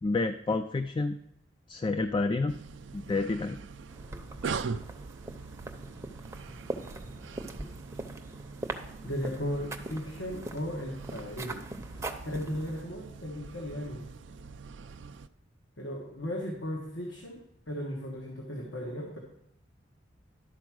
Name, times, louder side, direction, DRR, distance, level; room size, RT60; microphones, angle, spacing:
voice 1, 0.0-1.2 1.7-2.6 2.9-3.6, left 3 dB, 25° left, 9 dB, 0.3 m, -29 dB
sound 1, 2.5-15.3, right 5 dB, 80° right, 0.4 m, -43 dB
sound 2, 3.9-12.8, right 2 dB, 15° right, 0.7 m, -42 dB
voice 2, 9.0-14.1 15.8-19.2, equal, 85° left, -1 dB, 1.4 m, -36 dB
12.0 x 4.6 x 6.2 m, 0.82 s
head